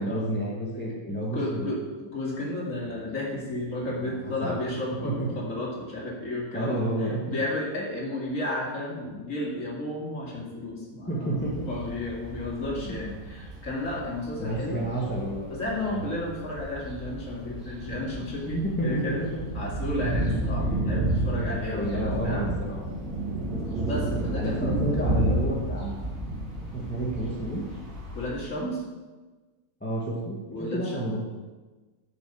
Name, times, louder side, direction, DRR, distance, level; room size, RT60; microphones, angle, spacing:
voice 1, 0.0-1.7 4.0-4.6 5.0-5.1 6.5-7.2 11.1-11.7 12.7-13.0 14.4-15.5 15.8-16.1 18.5-19.3 20.6-21.0 21.3-22.8 24.3-26.2 26.7-27.6 29.8-31.2, right 1 dB, 5° left, -4 dB, 1.4 m, -30 dB
voice 2, 1.3-1.8 2.1-14.9 15.5-19.2 19.5-22.5 23.8-25.2 28.1-28.8 30.5-31.0, left 1 dB, 60° left, -3 dB, 2.5 m, -33 dB
sound 1, 11.4-28.3, right 1 dB, 50° right, 3.5 m, -32 dB
7.2 x 6.3 x 7.7 m, 1.3 s
omnidirectional pair, 1.6 m